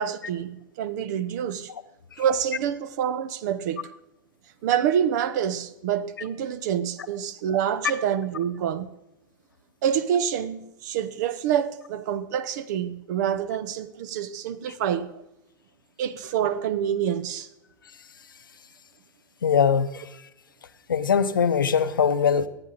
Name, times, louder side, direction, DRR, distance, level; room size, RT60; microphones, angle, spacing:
voice 1, 0.0-1.7 2.2-3.8 4.6-8.9 9.8-15.2 16.0-17.5, right 9 dB, 60° right, 0.8 m, -27 dB
voice 2, 19.4-20.1 20.9-22.5, left 7 dB, 80° left, 0.7 m, -21 dB
15.5 x 8.8 x 4.0 m
hypercardioid pair, 95°, 11 cm